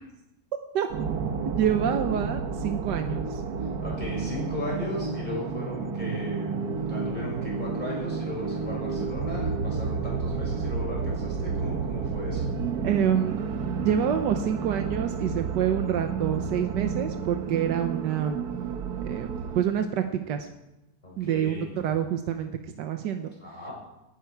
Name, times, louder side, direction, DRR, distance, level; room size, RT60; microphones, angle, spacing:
sound 1, 0.9-19.6, right 5 dB, 65° right, 1.5 m, -31 dB
voice 1, 1.6-3.4 12.8-13.3 13.8-18.4 19.0-20.5 21.2-22.5 22.8-23.3, right 9 dB, 85° right, 6 dB, 1.5 m, -27 dB
voice 2, 3.6-6.5 6.9-12.5 21.0-21.9 23.4-23.7, left 1 dB, 25° left, -4 dB, 6.8 m, -36 dB
18.0 x 13.0 x 4.7 m, 0.96 s
omnidirectional pair, 1.8 m